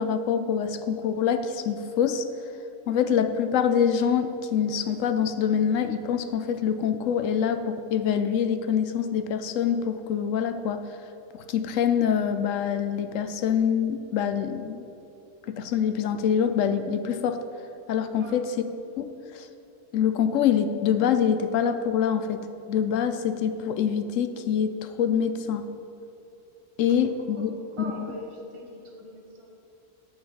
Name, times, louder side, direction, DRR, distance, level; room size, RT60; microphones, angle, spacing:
voice 1, 0.0-2.3 2.9-10.8 11.3-14.8 15.5-17.4 17.9-18.5 19.0-19.5 19.9-25.7 26.8-27.5 28.0-28.1, left 8 dB, 65° left, 9 dB, 0.9 m, -25 dB
voice 2, 18.1-18.5 27.0-27.4 27.8-29.5, right 1 dB, 20° right, 0 dB, 1.3 m, -41 dB
8.5 x 5.9 x 7.8 m, 2.8 s
omnidirectional pair, 1.6 m